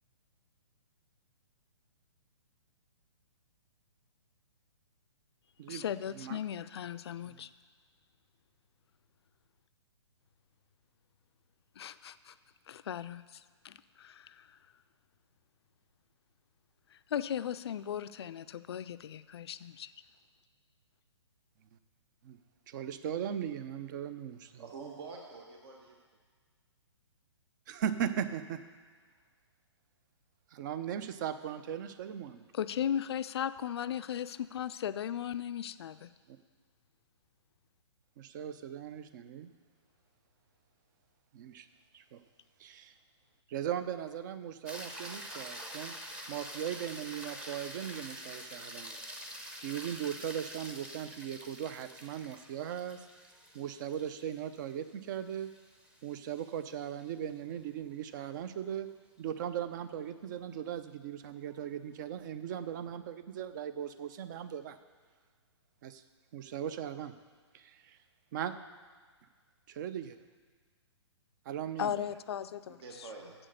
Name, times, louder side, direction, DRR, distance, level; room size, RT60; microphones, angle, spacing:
voice 1, 5.7-7.5 11.8-12.3 12.7-14.6 16.9-19.9 32.5-36.1 71.8-73.1, left 9 dB, 60° left, 13 dB, 0.4 m, -37 dB
voice 2, 22.7-24.6 27.7-28.6 30.5-32.4 36.3-36.4 38.2-39.5 41.3-41.7 41.9-42.2 42.6-42.9 43.5-46.0 46.3-49.0 49.6-53.1 53.5-55.5 56.0-58.9 59.2-64.8 65.8-66.0 66.3-67.1 67.5-68.0 68.3-68.5 69.8-70.0 71.5-72.0, right 9 dB, 40° right, 11 dB, 0.6 m, -38 dB
voice 3, 24.6-26.0 72.7-73.3, right 4 dB, 55° right, 0 dB, 1.3 m, -46 dB
sound 1, 44.7-57.1 61.5-61.6, equal, 5° right, 0.8 m, -46 dB
7.7 x 6.2 x 7.9 m, 1.5 s
hypercardioid pair, 130°, 15 cm